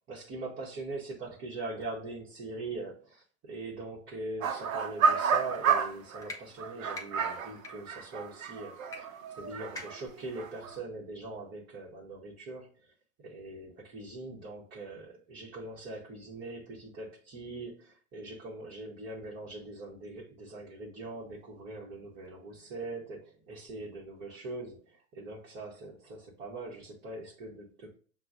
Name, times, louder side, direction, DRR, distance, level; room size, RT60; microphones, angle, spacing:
voice 1, 0.1-9.0 9.3-12.9 13.2-28.0, right 2 dB, 25° right, 1.1 m, -42 dB
sound 1, 4.4-6.3 6.6-10.0 10.3-10.8, right 6 dB, 65° right, 0.8 m, -30 dB
sound 2, 5.5-5.7 6.2-6.4 6.9-7.1 7.6-7.7 8.9-9.0 9.2-9.3 9.7-10.1, left 2 dB, 10° left, 0.5 m, -42 dB
6.7 x 2.3 x 2.5 m
hypercardioid pair, 105°, 44 cm